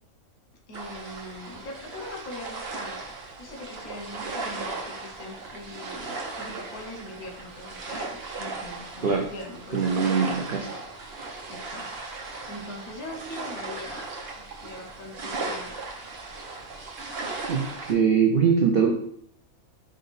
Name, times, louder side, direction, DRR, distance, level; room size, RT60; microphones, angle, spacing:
voice 1, 0.7-10.2 10.6-10.9 11.5-14.1 14.4-15.8 18.9-19.0, left 1 dB, 80° left, 2 dB, 1.4 m, -41 dB
sound 1, 0.7-17.9, right 3 dB, 50° right, 0.9 m, -37 dB
voice 2, 9.7-10.7 17.5-18.9, right 6 dB, 70° right, 1 dB, 0.5 m, -22 dB
5.0 x 2.6 x 4.0 m, 0.66 s
omnidirectional pair, 1.5 m